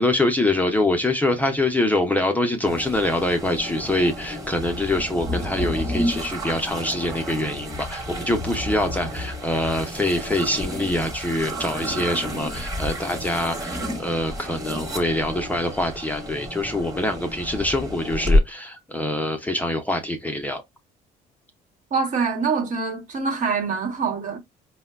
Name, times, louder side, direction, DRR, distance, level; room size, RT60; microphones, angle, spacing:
voice 1, 0.0-20.6, left 1 dB, 10° left, 0.6 m, -24 dB
sound 1, 2.7-18.4, left 1 dB, 20° right, 1.2 m, -29 dB
voice 2, 21.9-24.4, right 5 dB, 50° right, 1.1 m, -25 dB
4.7 x 2.2 x 2.3 m
cardioid pair, 110°, 17 cm